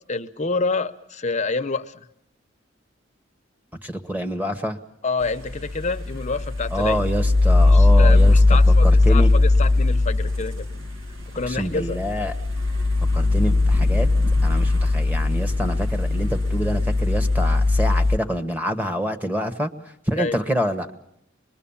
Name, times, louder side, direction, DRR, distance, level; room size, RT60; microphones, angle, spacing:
voice 1, 0.1-2.1 5.0-7.0 7.7-10.7 11.3-12.0 20.1-20.4, left 4 dB, 35° left, 9 dB, 0.8 m, -27 dB
voice 2, 3.8-4.8 6.7-9.3 11.4-12.3 13.1-14.1 14.4-19.7 20.1-20.9, equal, 10° right, 8 dB, 1.3 m, -27 dB
sound 1, 5.3-18.2, left 2 dB, 75° right, 1.6 m, -19 dB
25.0 x 21.5 x 7.2 m, 0.76 s
head